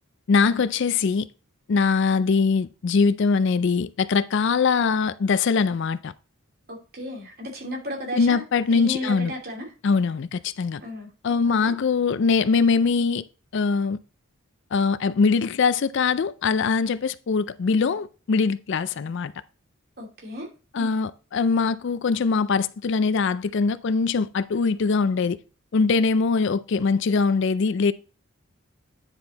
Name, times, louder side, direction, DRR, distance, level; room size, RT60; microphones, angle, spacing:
voice 1, 0.3-1.3 1.7-6.1 8.1-9.3 9.8-10.8 11.2-13.2 13.5-14.0 14.7-19.3 20.7-25.4 25.7-27.9, left 5 dB, 55° left, 0.4 m, -22 dB
voice 2, 6.7-8.4 8.7-9.7 10.8-11.1 11.4-11.7 20.0-20.5 20.8-21.0, equal, 45° right, 2.6 m, -34 dB
9.7 x 4.5 x 4.0 m
head